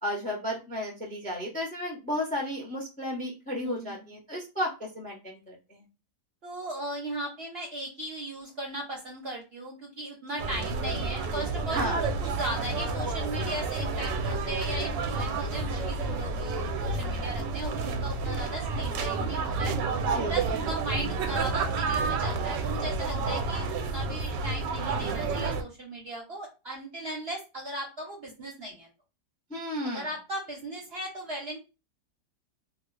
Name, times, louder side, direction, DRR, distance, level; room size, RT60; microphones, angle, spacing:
voice 1, 0.0-5.8 11.7-12.0 20.1-20.4 29.5-30.1, left 1 dB, 10° left, -1 dB, 0.4 m, -33 dB
voice 2, 3.6-4.1 6.4-19.8 20.3-28.9 29.8-31.6, right 1 dB, 50° right, -1 dB, 0.8 m, -37 dB
sound 1, 10.4-25.6, right 3 dB, 85° right, 1.2 m, -30 dB
2.9 x 2.3 x 3.2 m, 0.28 s
omnidirectional pair, 1.9 m